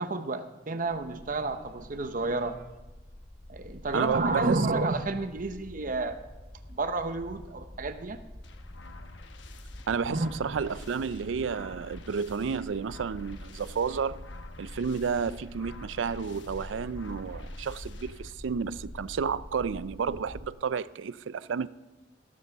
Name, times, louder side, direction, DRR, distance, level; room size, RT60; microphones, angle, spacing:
voice 1, 0.0-2.6 3.5-6.2 6.7-8.2 10.1-10.3, right 3 dB, 45° right, 0.8 m, -30 dB
sound 1, 0.8-20.5, left 1 dB, 15° left, 0.6 m, -46 dB
voice 2, 3.9-4.7 9.9-14.3 14.6-21.7, right 6 dB, 90° right, 0.4 m, -31 dB
sound 2, 8.4-18.3, left 4 dB, 75° left, 1.0 m, -52 dB
16.0 x 13.0 x 3.5 m
head